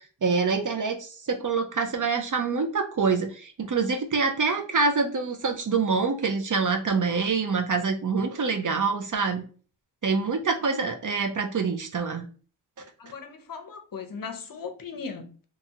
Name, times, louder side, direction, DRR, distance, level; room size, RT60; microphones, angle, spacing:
voice 1, 0.0-9.4 10.0-12.3, right 4 dB, 40° right, 0.7 m, -26 dB
voice 2, 13.0-15.4, left 5 dB, 45° left, 0.7 m, -38 dB
3.0 x 2.2 x 2.8 m
cardioid pair, 55°, 46 cm